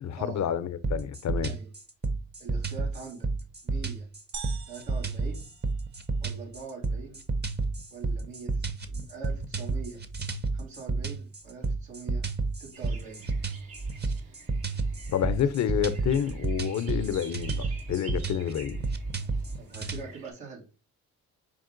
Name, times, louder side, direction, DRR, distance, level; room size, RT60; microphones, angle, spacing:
voice 1, 0.0-1.6 15.1-18.8, left 9 dB, 50° left, 0.6 m, -29 dB
sound 1, 0.8-20.0, right 3 dB, 25° right, 0.7 m, -31 dB
voice 2, 2.4-3.3 3.6-4.1 4.7-5.4 6.2-7.2 7.9-10.0 10.5-12.2 12.6-13.3 19.6-20.7, right 5 dB, 90° right, 1.9 m, -43 dB
sound 2, 4.3-6.3, right 6 dB, 50° right, 0.9 m, -44 dB
sound 3, 12.7-20.3, right 5 dB, 75° right, 1.4 m, -50 dB
5.2 x 2.4 x 3.7 m
supercardioid pair, 65°, 37 cm